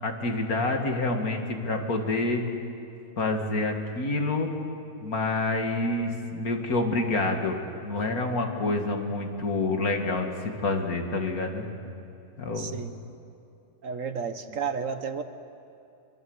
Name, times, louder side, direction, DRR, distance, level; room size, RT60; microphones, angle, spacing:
voice 1, 0.0-2.4 3.2-4.5 5.0-11.7 12.4-12.7, left 2 dB, 65° left, 3 dB, 2.6 m, -27 dB
voice 2, 12.5-13.0 13.8-15.2, right 6 dB, 55° right, 9 dB, 1.3 m, -32 dB
25.0 x 23.0 x 8.0 m, 2.6 s
omnidirectional pair, 1.7 m